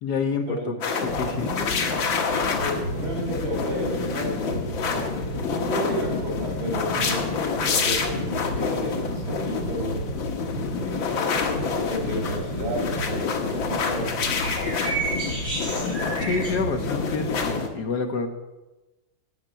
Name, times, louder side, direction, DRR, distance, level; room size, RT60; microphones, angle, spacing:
voice 1, 0.0-0.6 1.0-1.7 16.2-18.3, left 4 dB, 60° left, 6 dB, 1.6 m, -28 dB
sound 1, 0.8-17.7, left 4 dB, 80° left, 2.1 m, -27 dB
voice 2, 2.5-10.1 10.7-14.2, equal, 90° right, -2 dB, 4.7 m, -32 dB
sound 2, 12.5-16.5, right 3 dB, 45° right, 4.6 m, -33 dB
12.5 x 5.9 x 9.0 m, 1.1 s
omnidirectional pair, 2.1 m